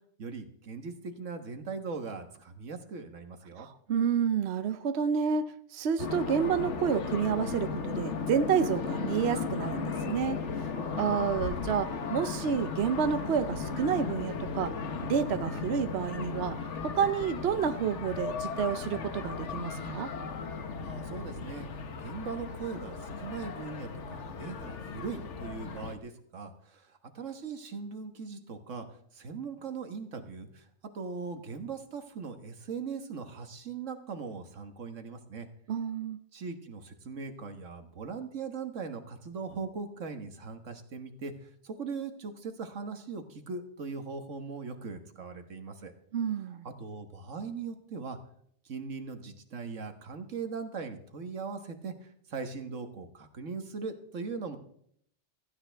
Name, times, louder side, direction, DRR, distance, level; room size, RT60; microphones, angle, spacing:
voice 1, 0.2-3.7 20.8-30.7 30.9-35.5 36.3-45.9 46.4-48.2 48.6-54.6, right 5 dB, 85° right, 7 dB, 1.7 m, -40 dB
voice 2, 3.6-10.4 11.0-14.7 15.0-16.6 16.8-20.1 35.7-36.2 46.1-46.6, right 7 dB, 65° right, 10 dB, 0.9 m, -29 dB
sound 1, 6.0-26.0, left 5 dB, 70° left, 1.3 m, -36 dB
16.5 x 15.0 x 3.4 m, 0.67 s
omnidirectional pair, 1.3 m